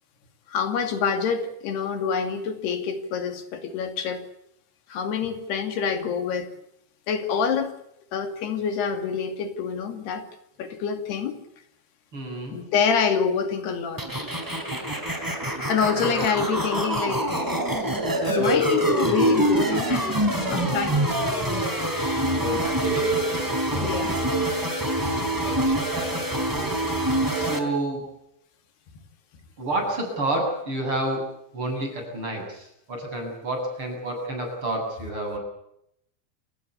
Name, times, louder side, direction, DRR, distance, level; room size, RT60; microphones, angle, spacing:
voice 1, 0.5-4.2 4.9-6.5 7.1-7.7 8.1-10.3 10.6-11.4 12.5-14.0 15.7-17.7 18.3-21.0 21.9-22.7 23.8-24.2, left 6 dB, 85° left, 8 dB, 4.6 m, -27 dB
voice 2, 12.1-12.6 15.5-15.6 16.0-16.2 21.6-22.0 22.4-23.3 23.7-24.2 25.1-28.1 29.6-35.4, right 1 dB, 30° right, 2 dB, 8.8 m, -31 dB
sound 1, 14.0-27.6, right 1 dB, 5° right, 3.6 m, -25 dB
29.0 x 17.5 x 8.3 m, 0.78 s
omnidirectional pair, 4.6 m